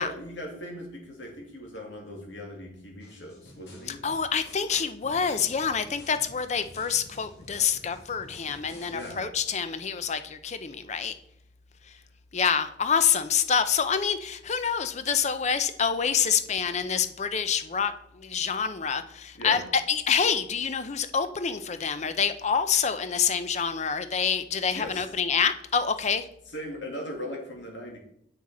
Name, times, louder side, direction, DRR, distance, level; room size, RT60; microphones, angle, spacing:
voice 1, 0.0-4.0 8.8-9.2 19.3-19.6 24.7-25.1 26.5-28.0, equal, 80° left, 0 dB, 2.4 m, -39 dB
sound 1, 3.0-9.2, left 1 dB, 65° left, 2.4 m, -50 dB
voice 2, 3.9-11.1 11.9-12.0 12.3-26.3, left 6 dB, 40° left, 11 dB, 0.6 m, -27 dB
7.6 x 6.2 x 4.2 m, 0.70 s
head